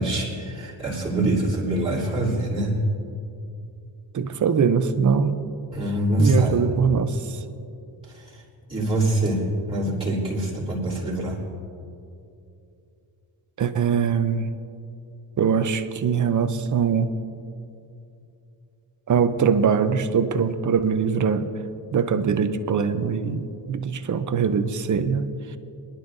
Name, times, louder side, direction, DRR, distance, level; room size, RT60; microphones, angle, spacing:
voice 1, 0.0-2.8 5.7-6.5 8.7-9.4 9.7-11.4, right 1 dB, 10° right, -7 dB, 3.2 m, -24 dB
voice 2, 4.1-5.4 6.2-7.4 13.6-14.5 15.4-17.1 19.1-21.5 21.9-25.6, right 6 dB, 40° right, 10 dB, 0.6 m, -22 dB
23.0 x 11.5 x 2.6 m, 2.7 s
wide cardioid pair, 165°, 48 cm